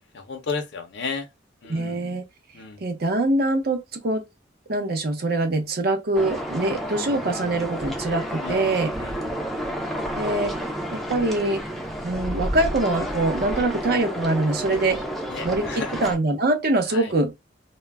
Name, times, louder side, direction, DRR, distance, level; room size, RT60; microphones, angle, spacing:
voice 1, 0.1-1.3 1.6-2.0 2.5-2.8 8.4-8.6 9.0-9.2 15.2-15.9 16.9-17.1, left 4 dB, 60° left, 0.5 m, -33 dB
voice 2, 1.7-2.2 2.8-4.2 4.7-8.9 10.2-10.5 10.9-11.6 12.0-15.0 15.4-17.3, right 2 dB, 55° right, 0.7 m, -24 dB
sound 1, 6.1-16.2, equal, ahead, 0.4 m, -30 dB
2.2 x 2.0 x 3.3 m
head